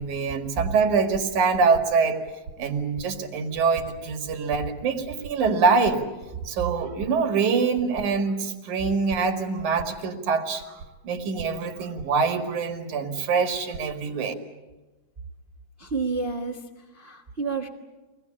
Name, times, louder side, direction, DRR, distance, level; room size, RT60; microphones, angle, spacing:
voice 1, 0.0-2.2 2.6-6.0 6.4-14.3, right 5 dB, 90° right, 4 dB, 3.6 m, -24 dB
voice 2, 15.8-16.6 16.9-17.7, right 4 dB, 35° right, 3 dB, 1.0 m, -29 dB
25.0 x 19.5 x 8.7 m, 1.2 s
omnidirectional pair, 3.3 m